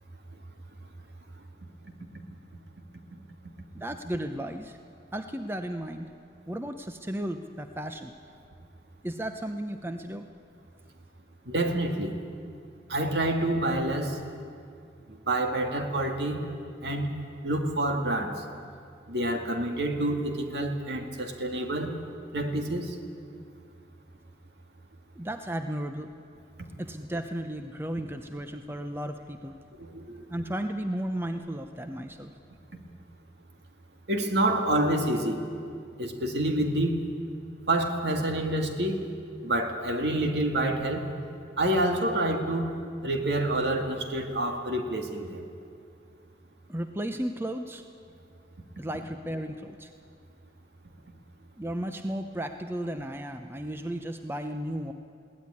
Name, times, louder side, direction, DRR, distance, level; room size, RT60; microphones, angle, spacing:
voice 1, 3.7-4.8 5.1-6.1 6.5-8.1 9.0-10.3 25.1-26.1 26.8-29.6 30.3-32.3 46.7-47.8 48.8-49.9 51.6-54.9, right 1 dB, 15° right, 7 dB, 0.7 m, -34 dB
voice 2, 11.5-12.1 12.9-14.2 15.3-16.4 16.8-17.1 17.4-18.4 19.1-21.9 22.3-22.9 29.8-30.2 34.1-35.4 36.0-37.0 37.7-39.0 39.4-41.1 41.6-42.7 43.0-45.4, right 1 dB, 65° right, 4 dB, 2.2 m, -27 dB
21.5 x 17.0 x 9.8 m, 2.4 s
head